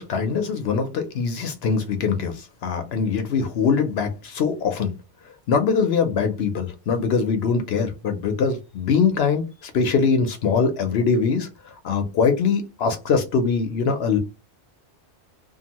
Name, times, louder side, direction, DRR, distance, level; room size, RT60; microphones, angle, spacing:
voice 1, 0.0-4.9 5.5-11.5 11.8-14.2, left 5 dB, 65° left, 7 dB, 0.9 m, -22 dB
2.7 x 2.6 x 2.9 m, 0.26 s
omnidirectional pair, 1.2 m